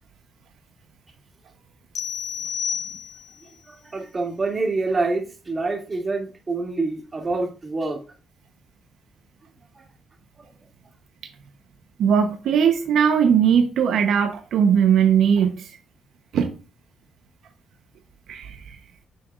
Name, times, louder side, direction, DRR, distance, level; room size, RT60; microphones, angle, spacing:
sound 1, 1.9-3.5, left 8 dB, 60° left, 0.8 m, -30 dB
voice 1, 3.7-8.0, right 3 dB, 30° right, 2.5 m, -26 dB
voice 2, 12.0-15.7 16.3-16.5 18.3-18.8, right 7 dB, 75° right, 0.9 m, -19 dB
9.3 x 6.9 x 2.5 m
cardioid pair, 90°, 0 cm